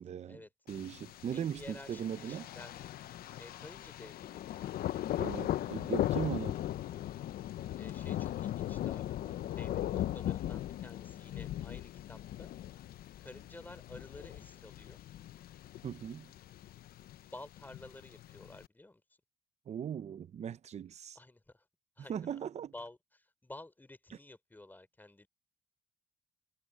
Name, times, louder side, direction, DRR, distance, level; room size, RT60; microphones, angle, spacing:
voice 1, 0.0-0.4 0.7-2.5 5.2-6.6 15.8-16.3 19.7-21.2 22.1-22.7, right 8 dB, 40° right, 0.8 m, -39 dB
Thunder, 0.7-18.7, left 13 dB, 60° left, 0.8 m, -39 dB
voice 2, 1.3-2.9 3.3-4.4 7.7-12.5 13.2-15.0 17.2-19.0 21.1-21.7 22.0-22.4 22.7-25.3, left 2 dB, 10° left, 4.5 m, -52 dB
cardioid pair, 110°, 17 cm